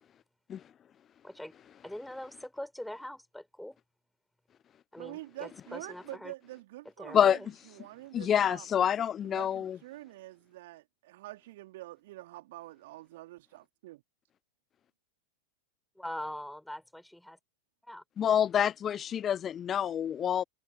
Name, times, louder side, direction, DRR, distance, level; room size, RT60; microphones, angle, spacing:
voice 1, 1.8-3.8 4.9-6.3 7.0-7.5 16.0-17.4 17.8-18.4, left 1 dB, ahead, 6.1 m, -43 dB
voice 2, 5.0-8.7 9.2-14.0, right 17 dB, 55° right, 3.1 m, -46 dB
voice 3, 8.1-9.8 18.2-20.4, left 9 dB, 25° left, 0.4 m, -27 dB
figure-of-eight pair, 90°, 0 cm